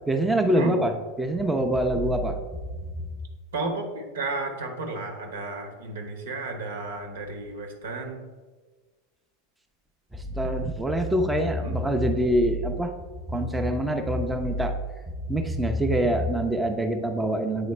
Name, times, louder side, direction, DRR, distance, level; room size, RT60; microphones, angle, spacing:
voice 1, 0.1-0.9 1.2-2.4 10.4-12.9 13.3-14.7 15.3-17.7, right 1 dB, 10° right, 4 dB, 0.6 m, -24 dB
voice 2, 3.5-8.2 11.6-11.8, right 2 dB, 70° right, 3 dB, 1.2 m, -32 dB
8.4 x 4.0 x 3.2 m, 1.4 s
figure-of-eight pair, 85°, 0 cm